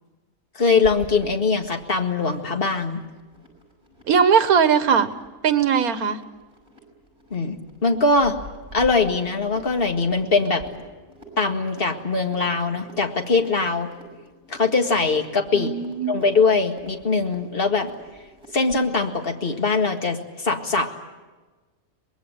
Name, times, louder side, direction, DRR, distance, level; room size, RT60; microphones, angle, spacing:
voice 1, 0.6-3.0 7.3-7.6 7.8-8.4 8.7-10.6 11.4-13.9 14.5-15.7 16.1-17.9 18.5-20.9, left 4 dB, 40° left, 4 dB, 2.1 m, -22 dB
sound 1, 0.8-18.9, right 1 dB, 35° right, 6.5 m, -47 dB
voice 2, 4.1-5.1 5.4-6.2 15.5-16.1, right 7 dB, 80° right, 12 dB, 1.6 m, -19 dB
24.5 x 21.0 x 9.0 m, 1.3 s
omnidirectional pair, 1.5 m